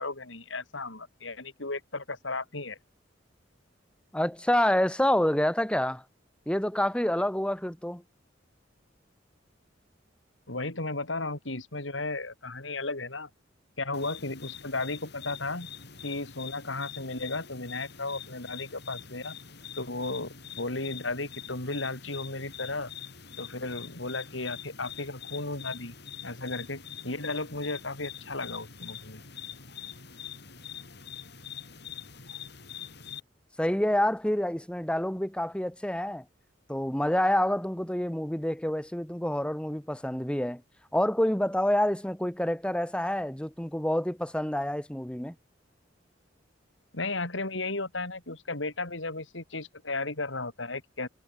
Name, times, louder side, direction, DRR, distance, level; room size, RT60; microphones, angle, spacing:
voice 1, 0.0-2.8 10.5-13.3 13.8-15.7 16.0-19.3 19.8-22.9 23.4-25.9 26.2-29.2 46.9-51.1, left 2 dB, 80° left, 4.7 m, -34 dB
voice 2, 4.1-6.0 6.5-8.0 33.6-36.2 36.7-40.6 40.9-45.3, left 1 dB, 5° left, 1.3 m, -27 dB
sound 1, 13.9-33.2, left 8 dB, 60° left, 4.5 m, -44 dB
head